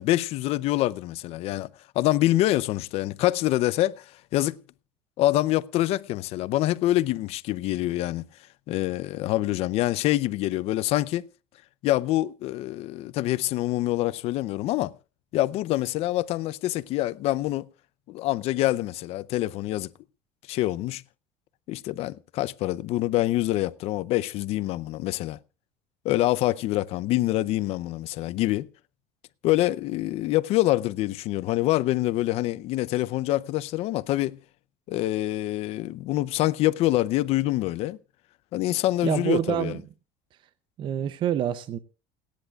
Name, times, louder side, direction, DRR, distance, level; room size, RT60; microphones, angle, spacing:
voice 1, 0.0-4.6 5.2-8.3 8.7-11.3 11.8-14.9 15.3-17.7 18.1-19.9 20.5-21.0 21.7-25.4 26.0-28.7 29.4-34.4 34.9-38.0 38.5-39.8, left 16 dB, 50° left, 0.6 m, -25 dB
voice 2, 39.0-39.8 40.8-41.8, right 10 dB, 40° right, 0.6 m, -26 dB
29.0 x 10.5 x 2.3 m
cardioid pair, 150°, 13 cm